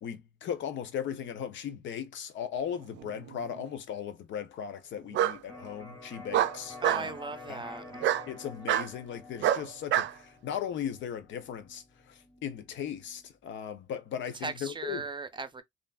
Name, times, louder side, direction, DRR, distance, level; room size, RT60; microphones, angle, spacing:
voice 1, 0.0-7.2 7.5-7.8 8.3-15.1, left 8 dB, 70° left, 0.6 m, -37 dB
Bark, 3.0-3.6 5.1-5.4 6.3-7.1 8.0-8.2 8.7-8.9 9.4-10.1, right 12 dB, 65° right, 0.4 m, -26 dB
Electric guitar, 5.5-13.2, left 2 dB, 10° left, 2.1 m, -49 dB
voice 2, 6.8-7.8 14.4-15.6, right 4 dB, 25° right, 0.6 m, -37 dB
3.1 x 2.5 x 2.3 m
cardioid pair, 90°, 20 cm